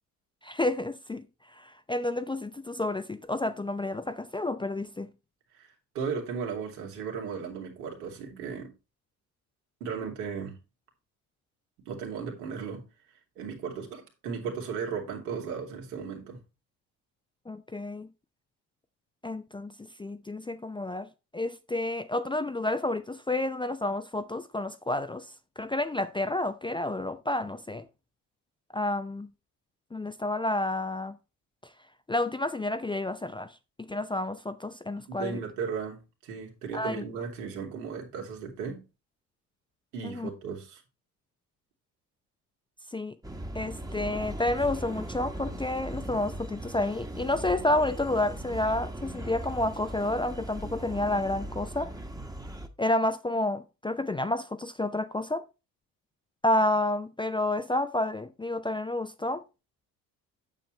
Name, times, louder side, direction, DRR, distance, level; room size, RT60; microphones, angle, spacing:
voice 1, 0.4-1.3 1.6-5.1 17.5-18.1 19.2-19.7 20.0-27.9 28.7-29.3 29.9-31.2 32.1-35.4 36.7-37.0 40.0-40.3 42.9-43.2 43.5-51.9 52.8-55.4 56.4-59.4, left 1 dB, 10° left, 0.6 m, -30 dB
voice 2, 5.5-8.7 9.8-10.6 11.9-12.8 13.4-16.4 35.1-38.8 39.9-40.8, right 6 dB, 70° right, 2.6 m, -36 dB
sound 1, 43.2-52.7, right 1 dB, 5° right, 1.3 m, -39 dB
9.0 x 7.2 x 3.2 m
figure-of-eight pair, 60°, 48 cm